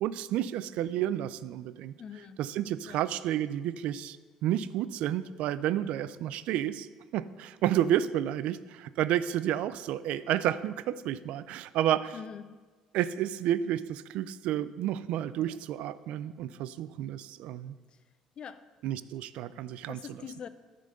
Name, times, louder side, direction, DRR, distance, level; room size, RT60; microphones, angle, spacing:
voice 1, 0.0-1.9 2.4-4.2 4.4-6.9 7.1-12.2 12.9-17.7 18.8-20.2, right 11 dB, 75° right, 15 dB, 0.3 m, -31 dB
voice 2, 2.0-2.4 2.9-3.0 12.1-12.5 15.4-15.6 18.4-18.6 19.9-20.5, left 7 dB, 50° left, 13 dB, 0.5 m, -43 dB
10.5 x 3.8 x 6.6 m, 1.4 s
supercardioid pair, 80°, 2 cm